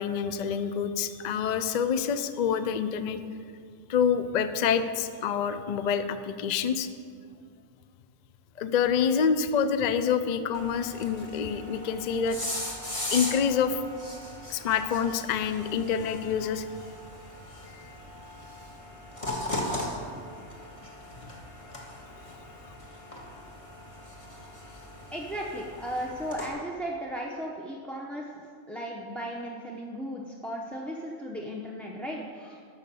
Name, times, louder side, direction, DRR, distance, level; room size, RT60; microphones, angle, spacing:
voice 1, 0.0-3.2 3.9-6.9 8.6-12.6 13.1-13.8 14.5-16.7 17.7-17.9, left 7 dB, 55° left, 11 dB, 0.5 m, -27 dB
sound 1, 10.5-26.5, left 1 dB, 25° left, 1.7 m, -39 dB
voice 2, 25.1-32.7, equal, ahead, -3 dB, 0.6 m, -36 dB
12.0 x 6.5 x 6.9 m, 2.2 s
omnidirectional pair, 1.3 m